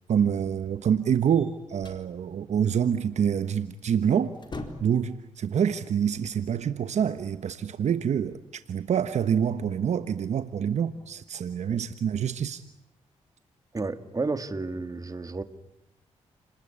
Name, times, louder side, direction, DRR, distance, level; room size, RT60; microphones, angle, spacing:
voice 1, 0.1-4.3 4.8-12.6, right 8 dB, 65° right, 11 dB, 1.2 m, -26 dB
sound 1, 1.3-2.1 3.7-3.9 4.2-5.1, left 2 dB, 40° left, 4.2 m, -40 dB
voice 2, 13.7-15.4, right 3 dB, 30° right, 10 dB, 2.3 m, -31 dB
30.0 x 20.0 x 9.9 m, 0.84 s
cardioid pair, 65°, 12 cm